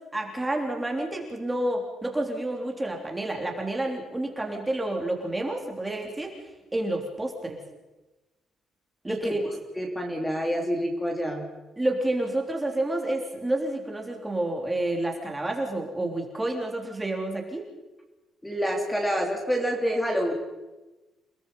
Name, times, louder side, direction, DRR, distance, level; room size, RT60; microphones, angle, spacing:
voice 1, 0.1-6.3 6.7-7.6 9.0-9.4 11.8-17.7, right 1 dB, 10° right, 2 dB, 3.4 m, -29 dB
voice 2, 9.8-11.5 18.4-20.3, equal, 5° left, 1 dB, 3.2 m, -27 dB
29.5 x 19.0 x 5.5 m, 1.1 s
cardioid pair, 160°, 0 cm